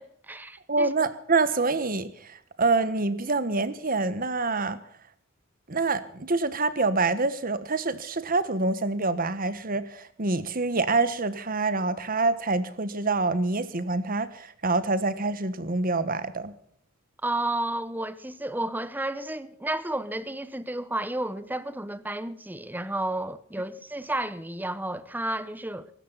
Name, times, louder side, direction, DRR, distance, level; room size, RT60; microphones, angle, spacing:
voice 1, 0.0-0.9 17.2-25.9, right 1 dB, 10° right, 1.0 m, -32 dB
voice 2, 0.7-4.8 5.7-16.6, right 3 dB, 45° right, 1.4 m, -26 dB
23.5 x 13.0 x 4.1 m
head